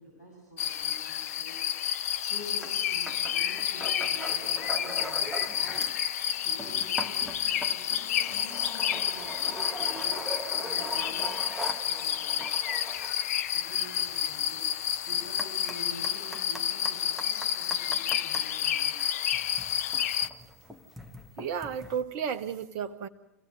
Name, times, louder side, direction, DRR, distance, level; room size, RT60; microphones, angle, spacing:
voice 1, 0.0-1.6 1.9-5.8 6.4-10.2 10.6-11.6 11.8-12.5 13.5-19.1, equal, 80° left, 8.0 m, -48 dB
sound 1, 0.6-20.3, left 10 dB, 60° left, 0.8 m, -30 dB
sound 2, 2.6-2.8 3.1-6.1 6.4-18.5 19.2-22.0, right 1 dB, ahead, 1.9 m, -41 dB
voice 2, 21.4-23.1, right 7 dB, 40° right, 1.5 m, -33 dB
26.0 x 17.0 x 7.9 m
figure-of-eight pair, 100°, 9 cm